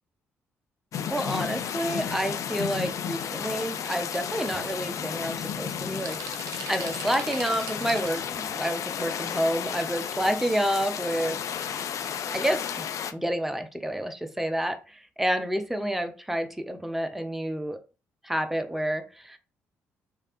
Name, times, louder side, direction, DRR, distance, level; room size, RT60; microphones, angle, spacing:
sound 1, 0.9-13.1, left 8 dB, 55° left, 0.3 m, -33 dB
voice 1, 1.1-6.2 6.7-11.4 12.3-12.9 13.1-17.8 18.2-19.4, equal, 5° right, 7 dB, 0.6 m, -29 dB
sound 2, 4.5-4.7 5.3-5.4 5.7-8.3 8.8-8.9 9.7-9.8 10.2-10.3 10.6-10.7, right 8 dB, 60° right, 0.4 m, -41 dB
3.1 x 2.4 x 2.9 m, 0.32 s
hypercardioid pair, 45°, 7 cm